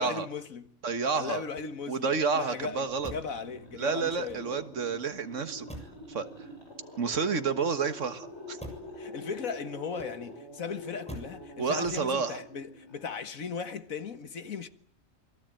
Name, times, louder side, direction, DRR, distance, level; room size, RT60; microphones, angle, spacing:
voice 1, 0.0-0.7 1.1-4.6 9.0-14.7, left 5 dB, 90° left, 2.0 m, -37 dB
voice 2, 0.8-1.4 1.9-3.1 3.8-5.7 6.1-6.5 7.0-8.6 11.6-12.4, right 5 dB, 65° right, 1.9 m, -30 dB
Motor vehicle (road), 1.4-2.2 3.0-3.5 4.1-4.8 5.7-6.1 6.9-7.7 8.6-9.0 9.9-10.5 11.1-11.5 11.8-12.3, equal, 5° left, 7.0 m, -46 dB
sound 1, 2.4-13.5, left 1 dB, 55° left, 8.6 m, -46 dB
27.5 x 22.0 x 9.0 m
omnidirectional pair, 1.4 m